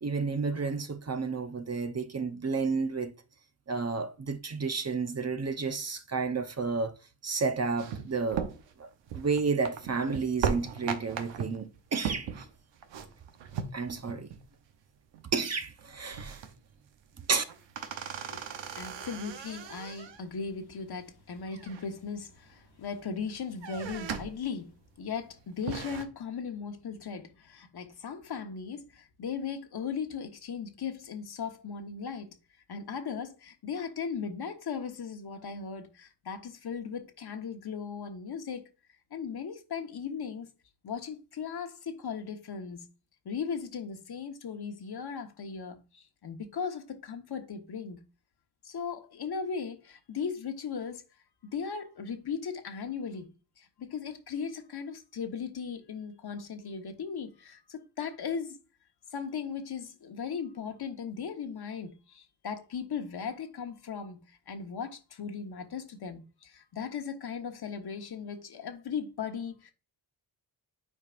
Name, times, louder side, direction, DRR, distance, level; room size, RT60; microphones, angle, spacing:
voice 1, 0.0-3.1 3.7-6.9 7.2-8.5 8.8-8.9 9.1-12.5 13.7-14.3 15.3-16.4 17.3-17.4, right 4 dB, 35° right, 0.9 m, -31 dB
sound 1, 7.8-14.4 14.7-14.8 15.1-15.5 15.8-16.7 17.1-20.3 21.5-22.3 22.8-23.2 23.5-24.4 24.9-25.0 25.4-26.0, right 7 dB, 80° right, 0.9 m, -37 dB
voice 2, 18.3-32.3 32.7-38.7 39.1-40.5 40.8-42.8 43.2-48.0 48.6-51.0 51.4-53.3 53.6-58.6 59.1-69.7, left 6 dB, 60° left, 1.2 m, -37 dB
8.2 x 4.6 x 2.5 m
supercardioid pair, 55°, 44 cm